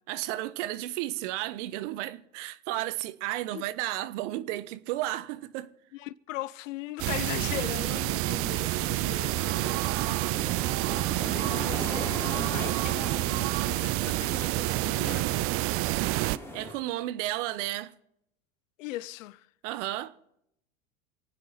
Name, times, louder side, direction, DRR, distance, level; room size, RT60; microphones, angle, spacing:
voice 1, 0.1-5.7 11.4-11.6 16.5-17.9 19.6-20.3, right 15 dB, 60° right, 1.2 m, -33 dB
voice 2, 5.9-9.9 11.3-15.5 18.8-19.5, left 16 dB, 70° left, 0.8 m, -39 dB
sound 1, 7.0-16.4, right 19 dB, 35° right, 0.4 m, -28 dB
sound 2, 8.6-16.7, left 1 dB, 5° left, 4.2 m, -41 dB
27.5 x 9.4 x 4.1 m
hypercardioid pair, 100°, 40 cm